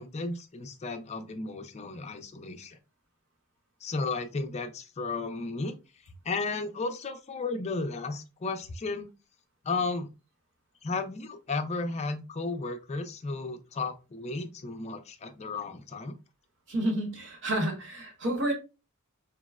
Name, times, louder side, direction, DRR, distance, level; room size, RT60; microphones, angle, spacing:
voice 1, 0.0-2.8 3.8-9.1 9.6-10.1 10.8-16.1, left 3 dB, 30° left, 0.4 m, -34 dB
voice 2, 16.7-18.5, right 1 dB, 55° right, 1.1 m, -30 dB
4.5 x 2.1 x 2.3 m
head